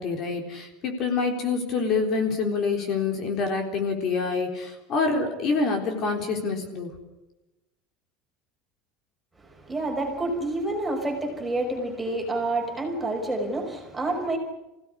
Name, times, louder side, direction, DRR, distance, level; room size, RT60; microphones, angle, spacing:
voice 1, 0.0-6.9, left 4 dB, 35° left, 3 dB, 3.8 m, -26 dB
voice 2, 9.4-14.4, right 2 dB, 5° right, 1 dB, 5.1 m, -28 dB
27.0 x 17.0 x 9.9 m, 1.0 s
cardioid pair, 170°, 0 cm